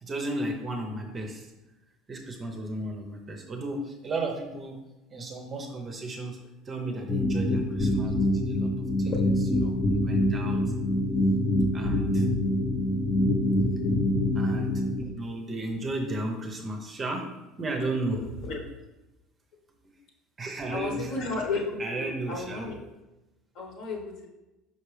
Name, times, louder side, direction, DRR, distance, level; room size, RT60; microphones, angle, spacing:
voice 1, 0.0-1.5 2.1-4.8 5.1-6.4 6.6-8.7 9.0-9.1 9.6-9.8 10.0-10.6 11.7-12.3 14.3-17.2 17.6-18.2 18.5-18.6 20.4-21.1 21.8-22.7, right 2 dB, 20° right, 3 dB, 0.7 m, -34 dB
sound 1, 7.1-15.0, left 1 dB, 30° left, 0.7 m, -25 dB
voice 2, 20.7-22.8 23.5-24.3, left 3 dB, 50° left, 1 dB, 1.2 m, -33 dB
5.8 x 5.3 x 3.3 m, 1.0 s
cardioid pair, 165°, 0 cm